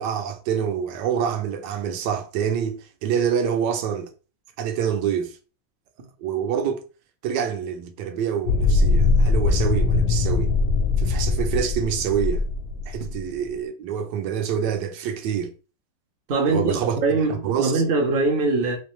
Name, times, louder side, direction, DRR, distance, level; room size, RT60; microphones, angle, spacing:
voice 1, 0.0-4.1 4.6-5.4 6.2-6.8 7.2-10.5 11.0-12.4 12.9-15.5 16.5-17.8, right 8 dB, 80° right, 1.2 m, -26 dB
sound 1, 8.5-13.2, left 3 dB, 70° left, 0.9 m, -21 dB
voice 2, 16.3-18.8, right 3 dB, 50° right, 0.6 m, -22 dB
3.2 x 3.1 x 3.0 m
omnidirectional pair, 1.9 m